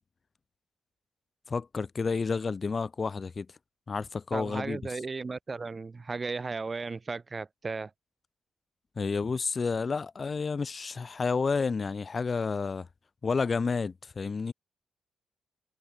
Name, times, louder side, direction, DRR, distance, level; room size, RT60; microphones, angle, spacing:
voice 1, 1.5-3.5 3.9-4.8 9.0-12.9 13.2-14.5, left 4 dB, 30° left, 6.5 m, -30 dB
voice 2, 4.3-7.9, right 4 dB, 25° right, 7.4 m, -35 dB
cardioid pair, 105°, 0 cm